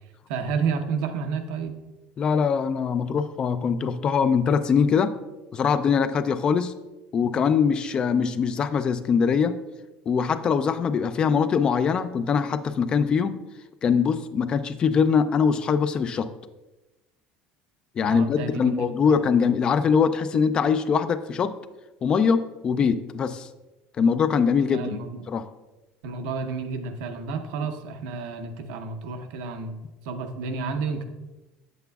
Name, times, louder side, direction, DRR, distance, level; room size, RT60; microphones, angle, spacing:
voice 1, 0.3-1.8 18.1-18.9 19.1-19.2 24.7-25.3 26.0-29.8 30.0-31.0, right 5 dB, 90° right, 5 dB, 0.8 m, -30 dB
voice 2, 2.2-5.1 5.5-6.7 7.1-9.6 10.1-13.4 13.8-16.3 18.0-21.6 22.0-23.5 24.0-24.9 25.3-25.4, left 6 dB, 30° left, 12 dB, 0.3 m, -22 dB
8.0 x 7.9 x 2.3 m, 1.1 s
cardioid pair, 160°, 3 cm